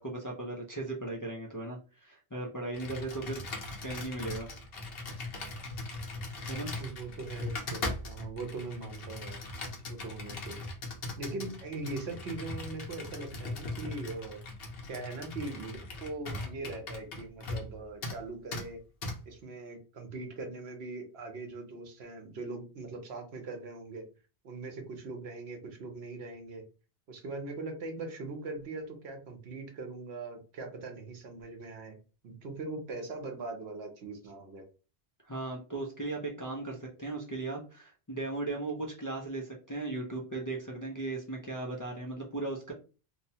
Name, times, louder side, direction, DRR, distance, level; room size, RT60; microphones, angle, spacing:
voice 1, 0.0-3.4 3.8-4.5 6.5-6.7 35.2-42.7, right 2 dB, 30° left, -3 dB, 0.3 m, -37 dB
Computer keyboard, 2.7-17.7 18.0-18.2 18.5-18.7 19.0-19.2, left 2 dB, 70° left, 0.9 m, -39 dB
voice 2, 6.8-9.4 9.9-10.6 11.2-14.4 14.9-18.8 19.3-24.1 24.4-26.6 27.1-32.0 32.2-34.6, right 3 dB, 80° right, 4 dB, 1.0 m, -41 dB
2.9 x 2.1 x 2.7 m, 0.34 s
omnidirectional pair, 1.1 m